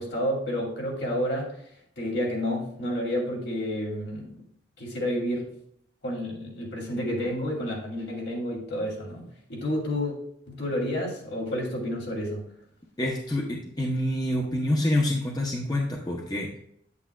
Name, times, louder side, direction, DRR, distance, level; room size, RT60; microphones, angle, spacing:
voice 1, 0.0-1.5 2.0-4.4 4.8-5.4 6.0-10.1 10.5-12.5, equal, 70° left, -3 dB, 2.8 m, -30 dB
voice 2, 13.0-16.6, left 1 dB, 20° left, 0 dB, 0.8 m, -27 dB
8.8 x 8.4 x 2.3 m, 0.69 s
head